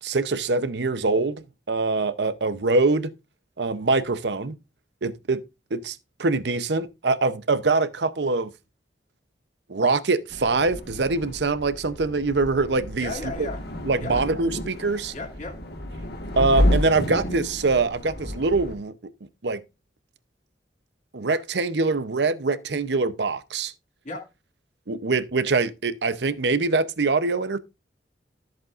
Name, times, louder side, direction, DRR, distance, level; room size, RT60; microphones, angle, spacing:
voice 1, 0.0-3.1 3.6-4.5 5.0-5.4 5.7-8.5 9.7-13.1 13.4-13.5 13.8-15.1 16.4-18.9 19.4-19.6 21.1-23.7 24.9-27.6, right 3 dB, 70° right, 0.8 m, -24 dB
sound 1, 10.3-18.8, left 1 dB, 65° left, 1.7 m, -30 dB
voice 2, 13.0-13.6 14.0-14.2 15.1-15.5 24.0-24.2, left 2 dB, 45° left, 2.4 m, -34 dB
13.5 x 7.8 x 2.5 m
head